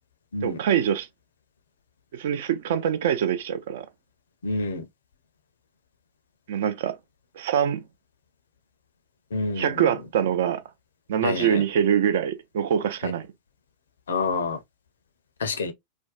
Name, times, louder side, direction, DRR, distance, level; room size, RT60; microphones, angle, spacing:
voice 1, 0.4-1.1 2.1-3.9 6.5-7.0 7.4-7.8 9.6-10.6 11.1-13.3, right 9 dB, 55° right, 0.4 m, -24 dB
voice 2, 4.4-4.8 9.3-9.8 11.2-11.6 13.0-13.1 14.1-14.6 15.4-15.7, left 3 dB, 65° left, 0.5 m, -27 dB
2.5 x 2.1 x 2.4 m
figure-of-eight pair, 90°, 0 cm